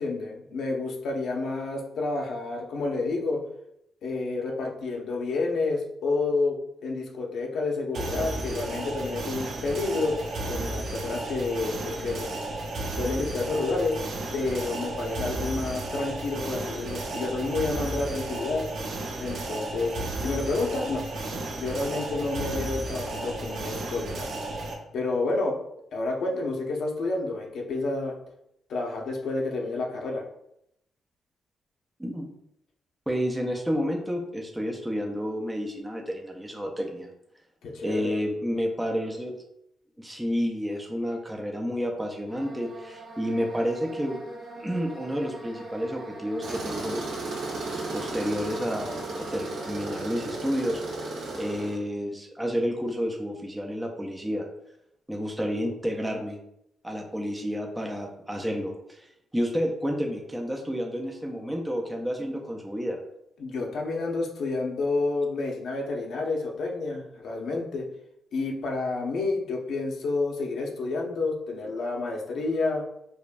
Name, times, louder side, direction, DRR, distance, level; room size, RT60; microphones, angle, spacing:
voice 1, 0.0-3.4 4.0-6.6 6.8-10.2 10.4-12.4 13.0-14.0 14.3-18.7 19.2-19.9 20.2-24.3 24.9-25.6 25.9-28.1 28.7-30.2 37.6-38.2 63.4-67.9 68.3-72.8, left 3 dB, 70° left, 0 dB, 0.7 m, -29 dB
sound 1, 7.9-24.7, right 2 dB, 60° right, 0.6 m, -33 dB
voice 2, 33.1-37.1 37.8-39.4 40.0-44.2 44.6-47.0 47.7-50.8 51.3-54.5 55.1-56.4 56.8-59.1 59.3-63.0, equal, 5° right, 1 dB, 0.4 m, -30 dB
sound 2, 42.3-49.8, right 1 dB, 25° right, 1.1 m, -43 dB
Tools, 46.4-51.8, right 2 dB, 75° right, 1.0 m, -34 dB
4.9 x 2.2 x 2.5 m, 0.78 s
wide cardioid pair, 165°, 0 cm